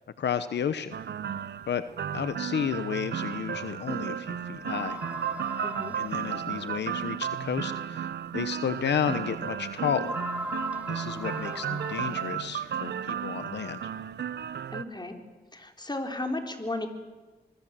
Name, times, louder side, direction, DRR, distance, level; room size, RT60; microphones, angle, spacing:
voice 1, 0.2-0.9 1.7-1.8 2.1-5.0 5.9-10.2 10.9-13.8, left 8 dB, 85° left, 12 dB, 1.0 m, -32 dB
sound 1, 0.9-14.8, right 8 dB, 75° right, 0.9 m, -34 dB
sound 2, 4.7-6.7 7.4-7.5 8.1-8.2 10.0-12.5, equal, 10° right, 0.8 m, -38 dB
voice 2, 5.6-6.0 14.7-15.2 15.5-16.9, left 2 dB, 25° left, 4 dB, 4.0 m, -34 dB
25.0 x 23.0 x 7.6 m, 1.3 s
cardioid pair, 55°, 18 cm